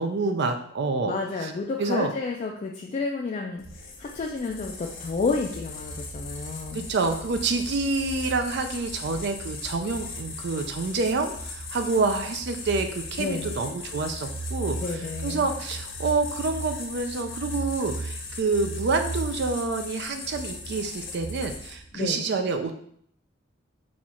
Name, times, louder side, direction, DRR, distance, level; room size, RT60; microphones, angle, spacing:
voice 1, 0.0-1.1 1.4-1.5 1.8-2.1 6.7-14.8 15.2-22.8, right 3 dB, 60° right, 6 dB, 0.4 m, -27 dB
voice 2, 1.0-6.9 13.2-13.5 14.8-15.5 21.9-22.3, left 4 dB, 35° left, 0 dB, 0.3 m, -31 dB
sound 1, 3.6-21.9, left 1 dB, 90° left, 1.1 m, -37 dB
4.2 x 2.4 x 4.3 m, 0.65 s
head